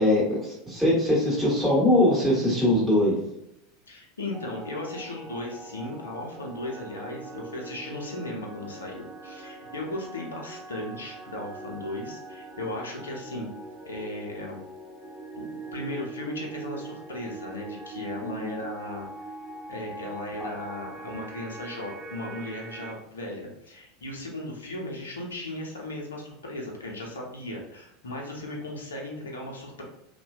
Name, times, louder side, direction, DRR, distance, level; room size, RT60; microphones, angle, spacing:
voice 1, 0.0-3.2 18.2-18.6 20.4-20.5, left 1 dB, 5° right, -7 dB, 1.3 m, -22 dB
voice 2, 3.9-13.5 13.8-14.6 15.3-19.1 19.7-29.8, left 1 dB, 75° left, 0 dB, 0.6 m, -36 dB
sound 1, 4.3-22.9, right 2 dB, 25° right, 0.6 m, -42 dB
2.5 x 2.2 x 2.2 m, 0.81 s
figure-of-eight pair, 80°, 0 cm